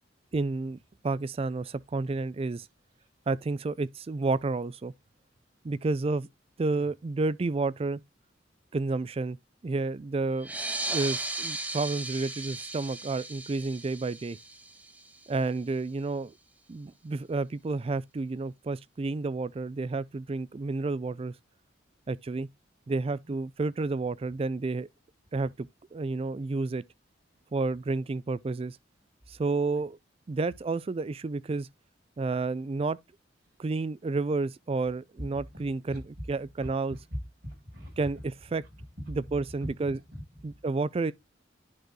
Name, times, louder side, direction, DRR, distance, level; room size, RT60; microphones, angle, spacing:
voice 1, 0.3-0.8 1.0-2.7 3.3-4.9 5.6-6.3 6.6-8.0 8.7-9.4 9.6-10.5 10.9-14.4 15.3-16.3 16.7-21.3 22.1-22.5 22.9-24.9 25.3-25.7 25.9-26.8 27.5-28.8 29.4-30.0 30.3-31.7 32.2-33.0 33.6-37.0 38.0-38.6 39.1-40.0 40.4-41.1, right 3 dB, 30° right, 0.4 m, -30 dB
sound 1, 10.4-15.5, right 2 dB, 10° right, 0.9 m, -36 dB
voice 2, 35.5-36.0 36.6-37.0 37.4-38.1 39.0-39.2 39.6-40.5, equal, 55° right, 5.5 m, -43 dB
10.5 x 4.4 x 3.0 m
head